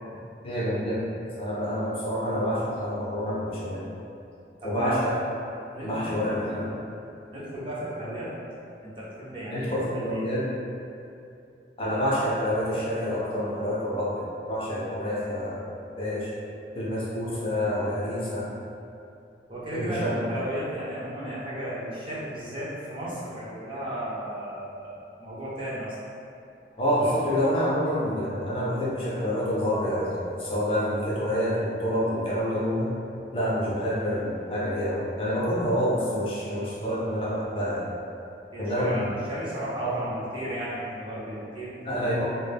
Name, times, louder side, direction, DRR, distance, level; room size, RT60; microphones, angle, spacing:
voice 1, 0.4-1.0 1.4-3.9 4.6-5.2 5.8-6.8 9.5-10.5 11.8-15.6 16.0-16.3 16.7-18.5 19.7-20.2 26.8-32.9 33.3-37.9 38.6-39.1 39.8-39.9 41.8-42.3, equal, 30° left, -8 dB, 0.5 m, -27 dB
voice 2, 4.6-5.0 5.7-6.4 7.3-8.3 8.8-9.7 9.9-10.3 19.5-25.9 38.5-41.8, right 1 dB, 30° right, -8 dB, 0.5 m, -34 dB
2.1 x 2.1 x 3.3 m, 2.6 s
head